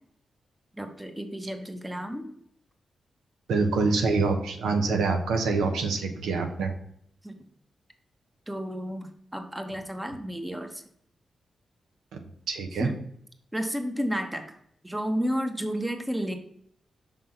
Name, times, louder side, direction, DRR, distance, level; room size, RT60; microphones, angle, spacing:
voice 1, 0.8-2.4 7.2-7.5 8.5-10.8 12.8-13.0 13.5-14.6 14.8-16.4, equal, 10° right, 6 dB, 1.1 m, -32 dB
voice 2, 3.5-6.7 12.1-12.2 12.5-12.9, right 4 dB, 85° right, 5 dB, 0.8 m, -25 dB
5.7 x 3.6 x 5.8 m, 0.67 s
supercardioid pair, 45°, 0 cm